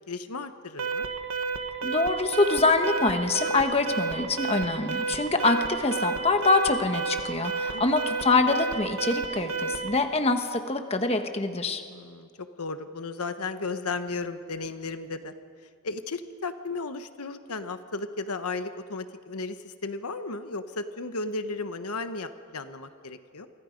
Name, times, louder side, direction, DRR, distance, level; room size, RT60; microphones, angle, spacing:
voice 1, 0.1-1.1 7.7-7.9 11.9-15.3 15.8-23.5, left 3 dB, 85° left, 9 dB, 1.1 m, -35 dB
Alarm, 0.8-10.0, right 5 dB, 80° right, 1.6 m, -31 dB
voice 2, 1.8-11.8, left 3 dB, 25° left, 6 dB, 1.3 m, -25 dB
29.0 x 24.5 x 5.3 m, 2.2 s
head